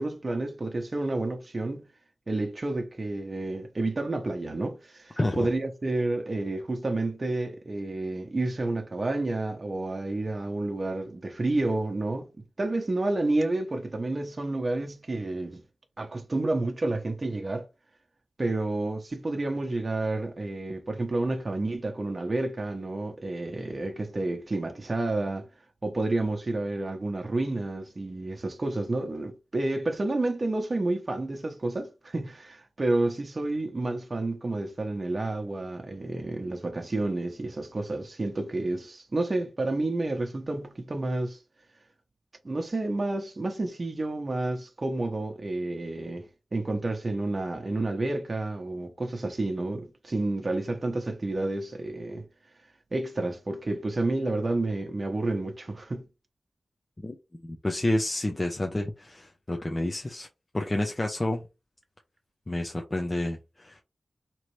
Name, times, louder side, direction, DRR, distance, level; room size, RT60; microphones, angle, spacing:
voice 1, 0.0-1.8 2.3-12.3 12.6-15.6 16.0-17.6 18.4-25.5 25.8-41.4 42.4-46.3 46.5-52.3 52.9-56.1, right 2 dB, 40° right, 0.9 m, -30 dB
voice 2, 5.2-5.5 57.0-57.2 57.4-60.3 60.5-61.4 62.5-63.8, left 1 dB, 30° left, 0.7 m, -29 dB
3.9 x 3.1 x 3.2 m
wide cardioid pair, 75°, 0 cm